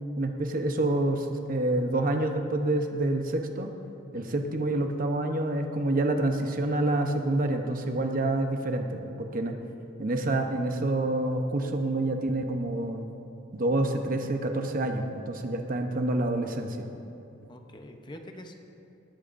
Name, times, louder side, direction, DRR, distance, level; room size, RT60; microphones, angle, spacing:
voice 1, 0.2-3.7 4.1-9.5 10.0-13.0 13.5-16.9, right 2 dB, 45° right, 4 dB, 0.9 m, -27 dB
voice 2, 17.5-18.5, left 1 dB, 25° left, 4 dB, 0.8 m, -45 dB
18.0 x 13.5 x 2.6 m, 2.8 s
head